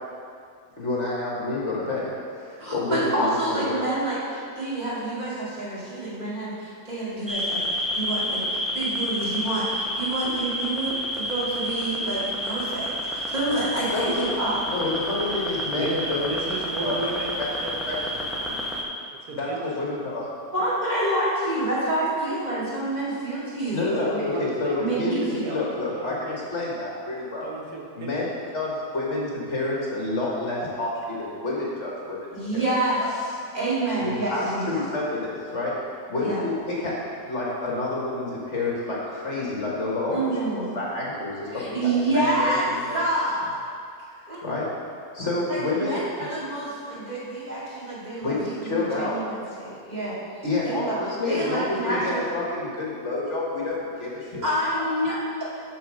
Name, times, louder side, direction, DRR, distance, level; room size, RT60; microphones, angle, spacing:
voice 1, 0.8-2.1 2.4-3.8 13.9-14.4 14.7-16.3 16.8-17.0 17.4-17.5 17.9-18.0 18.4-18.6 19.3-20.3 23.7-27.5 27.9-32.3 32.5-32.6 34.0-35.7 36.1-36.9 37.2-43.0 44.4-44.7 45.1-46.3 48.2-49.2 50.4-54.4 54.7-54.9, left 2 dB, 45° left, -4 dB, 1.6 m, -29 dB
voice 2, 2.6-8.4 8.7-14.6 20.5-24.3 24.8-25.6 32.3-33.2 33.5-34.8 36.2-36.4 40.1-40.7 41.5-42.7 42.9-43.4 44.3-44.4 45.5-49.3 49.6-50.2 50.6-51.0 51.3-52.3 54.4-55.4, right 1 dB, 25° right, -9 dB, 2.3 m, -28 dB
sound 1, 7.3-18.8, equal, ahead, 0.6 m, -29 dB
voice 3, 15.7-18.4 19.2-20.0 23.8-24.9 25.1-26.5 27.4-28.4, right 3 dB, 70° right, -1 dB, 1.3 m, -35 dB
7.0 x 5.7 x 6.2 m, 2.3 s
omnidirectional pair, 1.8 m